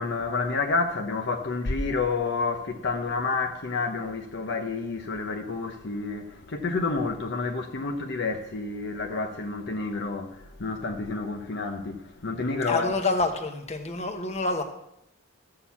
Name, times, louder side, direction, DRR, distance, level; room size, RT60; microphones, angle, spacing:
voice 1, 0.0-12.9, left 3 dB, 50° left, 0.9 m, -29 dB
voice 2, 12.7-14.6, left 2 dB, 30° left, 1.2 m, -27 dB
13.0 x 6.7 x 7.1 m
head